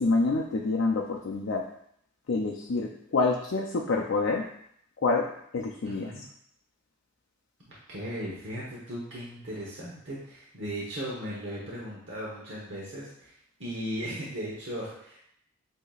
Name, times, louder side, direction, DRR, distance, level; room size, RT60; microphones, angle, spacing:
voice 1, 0.0-1.6 2.3-4.4 5.0-5.3 5.5-6.1, left 3 dB, 70° left, 0 dB, 0.5 m, -27 dB
voice 2, 5.8-6.2 7.9-13.3 13.6-15.2, equal, 65° right, -6 dB, 1.0 m, -37 dB
8.0 x 2.8 x 2.4 m, 0.70 s
head